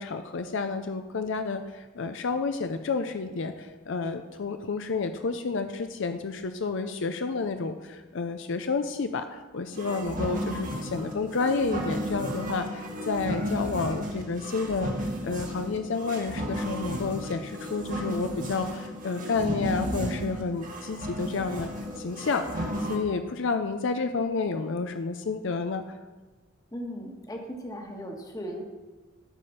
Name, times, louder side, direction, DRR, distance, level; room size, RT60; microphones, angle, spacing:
voice 1, 0.0-21.7 22.0-26.0, left 4 dB, 60° left, 8 dB, 0.5 m, -30 dB
sound 1, 9.7-23.0, equal, 40° right, 1.5 m, -34 dB
voice 2, 26.7-28.6, equal, 15° left, 2 dB, 1.3 m, -37 dB
13.0 x 5.0 x 5.6 m, 1.2 s
head